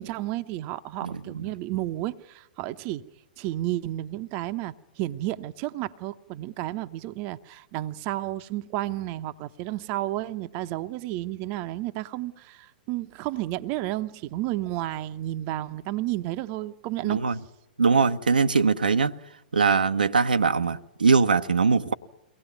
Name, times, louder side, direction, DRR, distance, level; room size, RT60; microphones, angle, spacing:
voice 1, 0.0-3.1 3.4-17.2, right 15 dB, 35° right, 0.9 m, -32 dB
voice 2, 17.0-17.4 17.8-19.1 19.5-21.9, right 5 dB, 70° right, 0.9 m, -21 dB
23.5 x 18.5 x 9.3 m
figure-of-eight pair, 105°, 5 cm